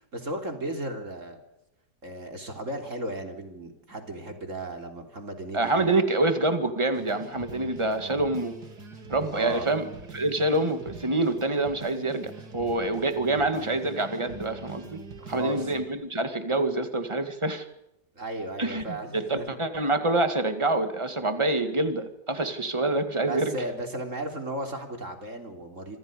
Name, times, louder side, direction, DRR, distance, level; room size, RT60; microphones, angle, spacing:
voice 1, 0.1-1.4 2.0-6.0 9.3-9.7 15.1-15.7 18.2-19.6 23.2-26.0, right 1 dB, 50° right, 4 dB, 3.9 m, -35 dB
voice 2, 5.5-8.5 9.1-9.9 10.1-15.0 15.3-17.7 18.6-23.6, right 2 dB, 15° right, 8 dB, 2.2 m, -26 dB
sound 1, 6.9-15.9, right 3 dB, 75° right, 3.7 m, -44 dB
26.5 x 26.0 x 5.3 m, 0.88 s
omnidirectional pair, 1.8 m